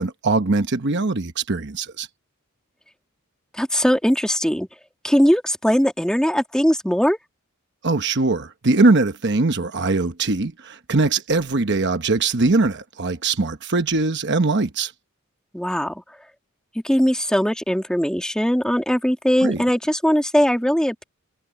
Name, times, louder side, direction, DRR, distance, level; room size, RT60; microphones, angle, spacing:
voice 1, 0.0-2.1 7.8-14.9 19.4-19.6, right 3 dB, 55° right, 1.0 m, -21 dB
voice 2, 3.5-4.7 5.0-7.2 15.5-16.0 16.8-21.0, equal, 5° left, 2.4 m, -20 dB
head